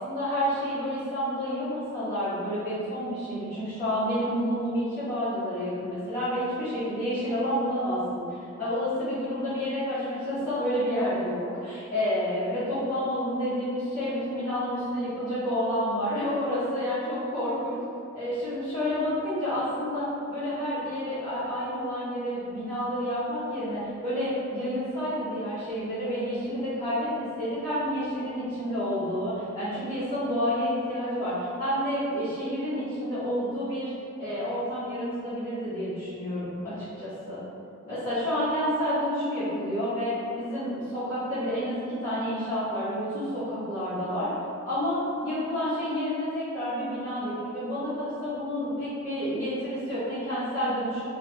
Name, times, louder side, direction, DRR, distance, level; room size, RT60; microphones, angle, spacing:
voice 1, 0.0-17.8 18.1-33.9 34.2-37.4 37.8-44.3 44.6-51.1, equal, 25° left, -17 dB, 1.1 m, -29 dB
3.0 x 2.4 x 3.4 m, 2.5 s
head